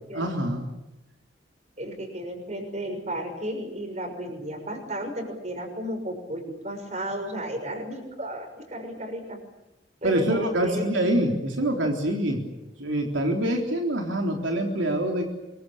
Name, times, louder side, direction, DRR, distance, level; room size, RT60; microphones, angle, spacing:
voice 1, 0.1-0.7 10.0-15.3, right 1 dB, 80° right, 2 dB, 3.6 m, -25 dB
voice 2, 1.8-9.4 10.0-10.9, right 1 dB, 35° right, 5 dB, 6.2 m, -33 dB
25.5 x 23.5 x 8.7 m, 0.97 s
head